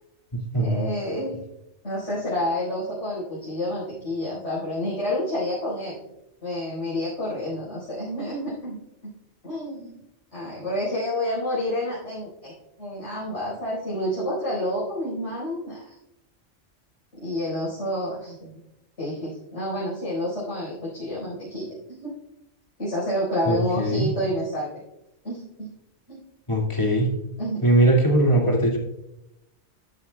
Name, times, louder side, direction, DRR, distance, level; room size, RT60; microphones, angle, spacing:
voice 1, 0.6-1.3 1.8-6.0 6.4-8.8 9.0-9.1 9.4-10.0 10.3-12.5 12.8-15.9 17.2-18.5 19.0-22.1 22.8-24.8 25.2-25.7 26.1-26.2 27.4-27.6, left 1 dB, 75° left, -8 dB, 5.0 m, -29 dB
voice 2, 23.5-24.1 26.5-27.1 27.6-28.8, right 1 dB, 25° left, -1 dB, 2.2 m, -20 dB
13.5 x 11.0 x 2.3 m, 0.86 s
omnidirectional pair, 1.2 m